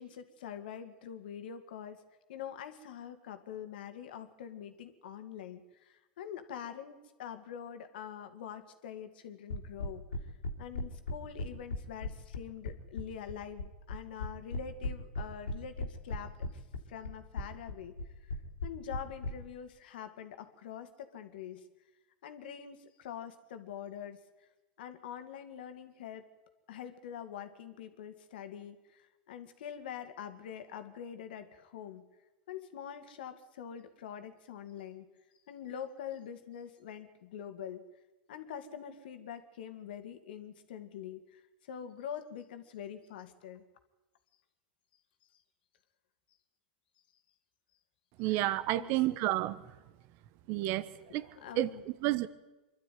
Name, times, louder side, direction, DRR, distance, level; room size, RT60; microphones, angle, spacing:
voice 1, 0.0-2.0 2.3-10.0 10.6-16.6 16.9-17.9 18.2-18.4 18.6-21.6 22.2-24.2 24.8-26.3 26.7-32.0 32.5-35.1 35.5-37.8 38.3-41.4 41.7-43.6 48.2-48.4 48.8-49.0 51.4-51.8, left 9 dB, 70° left, 8 dB, 2.3 m, -45 dB
sound 1, 9.5-19.3, left 3 dB, 90° left, 3.0 m, -37 dB
voice 2, 48.2-49.6 50.5-51.3 51.6-52.3, right 15 dB, 50° right, 16 dB, 1.3 m, -31 dB
24.5 x 12.5 x 9.4 m, 1.1 s
hypercardioid pair, 100°, 5 cm